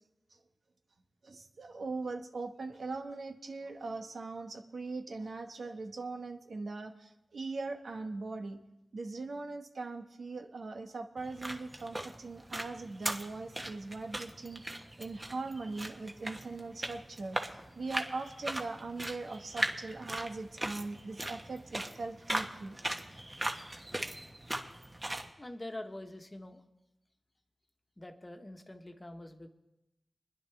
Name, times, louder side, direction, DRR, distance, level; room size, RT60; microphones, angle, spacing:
voice 1, 1.2-8.6 8.9-17.4 17.7-22.8, right 3 dB, 80° right, 4 dB, 1.2 m, -40 dB
sound 1, 11.2-25.3, right 1 dB, 25° right, 1.4 m, -39 dB
voice 2, 25.4-26.6 28.0-29.5, left 1 dB, 30° left, 5 dB, 1.3 m, -45 dB
24.5 x 10.5 x 3.4 m, 0.96 s
cardioid pair, 50°, 0 cm